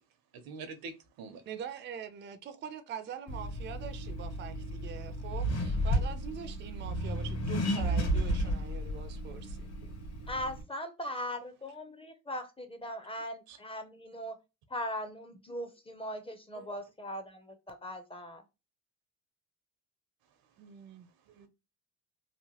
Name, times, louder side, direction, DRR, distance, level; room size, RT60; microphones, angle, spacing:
voice 1, 0.3-1.4 13.5-13.6 16.6-16.7 21.3-21.5, right 4 dB, 80° right, 0.7 m, -45 dB
voice 2, 1.5-9.6 20.6-21.1, right 8 dB, 35° right, 0.4 m, -43 dB
Accelerating revving vroom, 3.3-10.6, equal, 45° left, 1.0 m, -33 dB
voice 3, 10.3-14.4 14.7-18.4, equal, 15° left, 0.5 m, -39 dB
2.9 x 2.1 x 2.8 m
cardioid pair, 95°, 35 cm